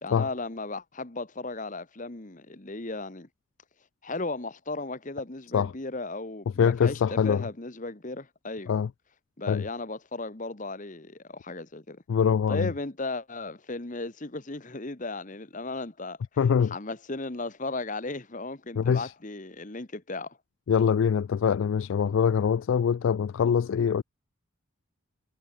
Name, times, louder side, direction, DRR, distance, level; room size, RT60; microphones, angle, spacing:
voice 1, 0.0-3.3 4.0-8.7 9.4-12.0 12.5-16.2 16.7-20.4, left 2 dB, 35° left, 1.3 m, -36 dB
voice 2, 6.6-7.5 8.7-8.9 9.5-9.7 12.1-12.7 16.4-16.7 18.8-19.1 20.7-24.0, left 7 dB, 65° left, 0.3 m, -24 dB
head